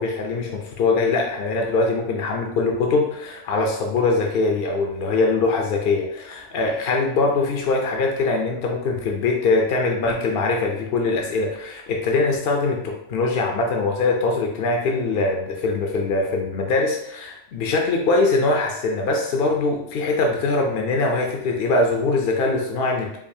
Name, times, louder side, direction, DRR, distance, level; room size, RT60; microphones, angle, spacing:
voice 1, 0.0-23.2, left 3 dB, 60° left, 1 dB, 0.7 m, -22 dB
4.6 x 2.5 x 2.7 m, 0.78 s
omnidirectional pair, 1.3 m